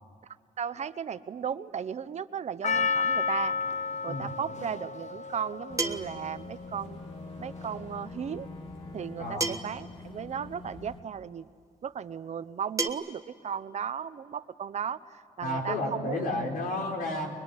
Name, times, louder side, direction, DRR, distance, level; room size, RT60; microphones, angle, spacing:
voice 1, 0.6-3.6 4.0-7.0 7.4-8.5 8.9-11.4 11.8-16.3, right 7 dB, 55° right, 14 dB, 0.8 m, -36 dB
Percussion, 2.6-7.0 7.6-7.7, left 5 dB, 55° left, 1.1 m, -31 dB
sound 1, 4.1-4.2 5.8-6.3 7.8-7.9 9.4-9.9 11.1-11.2 12.8-12.9, right 3 dB, 20° right, 1.5 m, -30 dB
Boat Water vehicle / Engine, 5.7-11.0, left 3 dB, 40° left, 3.0 m, -44 dB
voice 2, 9.2-9.5 15.4-17.4, left 1 dB, 85° left, 1 dB, 4.9 m, -32 dB
24.0 x 21.0 x 9.7 m, 2.3 s
cardioid pair, 110°, 14 cm